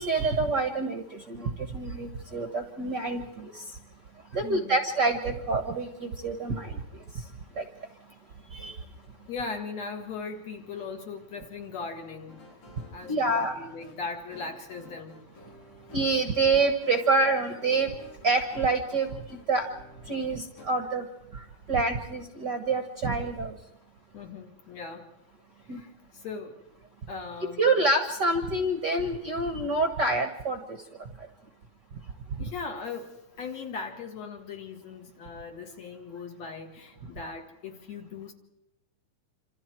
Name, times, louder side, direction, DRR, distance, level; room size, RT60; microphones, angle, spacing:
voice 1, 0.0-3.6 4.3-6.8 7.6-7.7 8.5-8.8 13.1-13.5 15.9-17.9 18.2-19.7 20.1-21.0 21.3-23.5 25.7-25.8 27.6-30.8, right 3 dB, 55° right, 7 dB, 1.2 m, -27 dB
voice 2, 4.4-4.8 8.4-8.8 9.3-12.4 12.9-15.2 24.1-25.1 25.7-26.6 27.1-27.8 32.4-38.3, left 4 dB, 55° left, 3 dB, 2.8 m, -39 dB
sound 1, 12.3-20.6, left 3 dB, 90° left, 5.4 m, -52 dB
27.5 x 27.0 x 4.6 m, 0.86 s
omnidirectional pair, 4.0 m